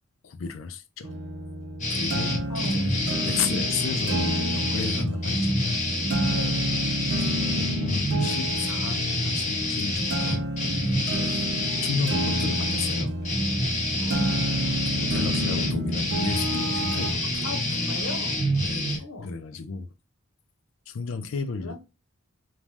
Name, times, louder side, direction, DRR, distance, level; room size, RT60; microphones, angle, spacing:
voice 1, 0.2-1.1 1.9-2.9 3.2-5.8 7.5-10.5 11.2-11.4 11.8-13.2 14.9-17.8 18.6-19.9 20.9-21.8, left 5 dB, 65° left, 0.4 m, -33 dB
sound 1, 1.0-17.1, right 1 dB, 55° right, 0.5 m, -30 dB
sound 2, 1.8-19.0, left 1 dB, 35° left, 1.1 m, -27 dB
voice 2, 2.5-3.3 6.3-6.7 11.1-11.3 14.0-14.7 15.0-15.6 17.4-18.5 19.0-19.3 21.6-21.8, left 1 dB, 80° left, 0.9 m, -39 dB
2.6 x 2.2 x 3.1 m
head